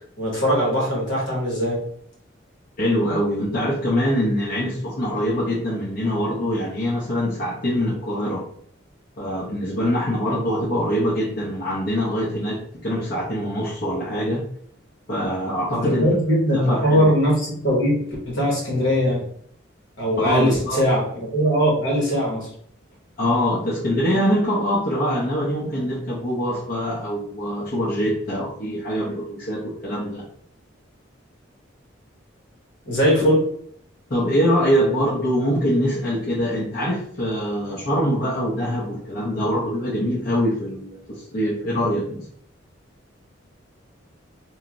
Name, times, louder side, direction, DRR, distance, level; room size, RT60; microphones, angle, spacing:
voice 1, 0.2-1.9 15.7-19.3 20.0-22.5 32.9-33.5, equal, 70° left, -3 dB, 1.2 m, -20 dB
voice 2, 2.8-8.5 9.2-14.4 15.1-16.1 16.5-17.1 20.2-20.8 23.2-30.2 34.1-42.2, equal, 50° left, -8 dB, 0.7 m, -23 dB
2.9 x 2.4 x 2.5 m, 0.63 s
head